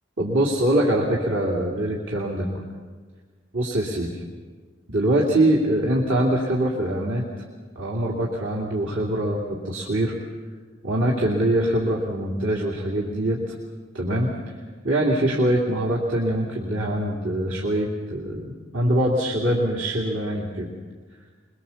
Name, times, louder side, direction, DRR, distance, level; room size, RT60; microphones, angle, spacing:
voice 1, 0.2-2.6 3.5-4.2 4.9-7.2 7.7-10.1 10.8-13.5 13.9-14.3 14.8-18.4 18.7-20.7, right 1 dB, 80° right, -3 dB, 2.8 m, -23 dB
23.0 x 22.5 x 7.2 m, 1.5 s
head